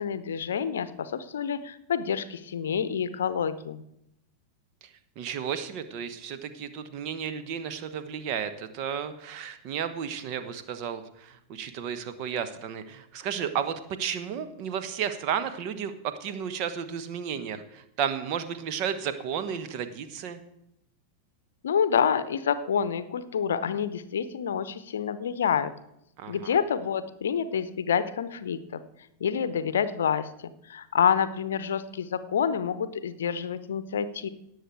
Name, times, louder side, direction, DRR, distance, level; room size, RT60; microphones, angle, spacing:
voice 1, 0.0-3.8 21.6-25.7 26.3-28.8 29.2-34.3, left 7 dB, 65° left, 14 dB, 0.7 m, -28 dB
voice 2, 5.2-20.4 26.2-26.5, right 8 dB, 45° right, 10 dB, 1.1 m, -33 dB
18.0 x 6.7 x 4.6 m, 0.80 s
figure-of-eight pair, 90°, 0 cm